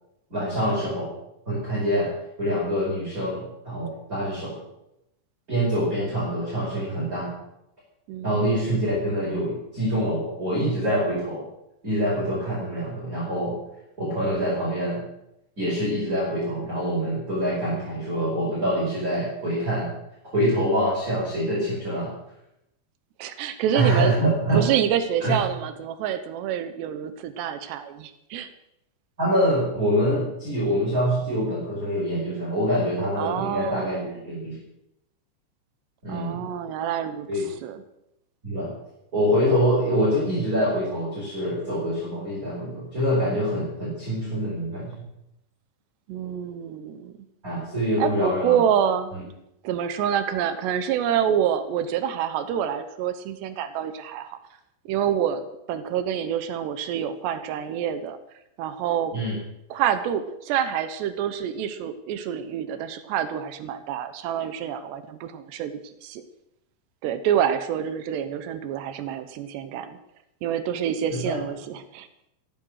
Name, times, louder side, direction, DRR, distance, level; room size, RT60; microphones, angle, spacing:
voice 1, 0.3-1.1 1.5-2.1 2.4-4.6 5.5-7.3 8.2-11.4 11.8-13.6 14.0-15.0 15.6-19.9 20.3-22.1 23.7-24.7 25.2-25.4 29.2-34.6 36.0-36.4 37.3-37.4 38.4-38.7 39.1-45.0 47.4-48.6 59.1-59.4 71.1-71.4, equal, 15° right, -6 dB, 5.1 m, -25 dB
voice 2, 8.1-8.5 23.2-24.1 24.5-28.5 33.2-34.4 36.1-37.8 46.1-47.2 48.0-49.1 49.6-54.4 54.9-58.2 58.6-59.1 59.7-66.2 67.0-70.0 70.4-72.1, right 9 dB, 75° right, 10 dB, 2.8 m, -27 dB
15.5 x 13.5 x 6.5 m, 0.84 s
omnidirectional pair, 5.6 m